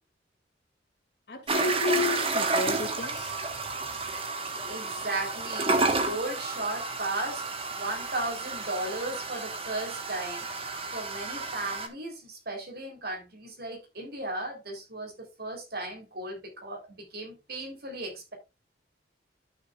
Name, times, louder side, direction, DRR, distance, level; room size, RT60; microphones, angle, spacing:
voice 1, 1.3-3.4, left 3 dB, 60° left, 2.4 m, -31 dB
sound 1, 1.5-11.9, right 3 dB, 30° right, 1.3 m, -31 dB
voice 2, 4.6-10.5 10.9-18.3, right 2 dB, 55° right, 3.6 m, -36 dB
12.5 x 6.6 x 2.4 m
head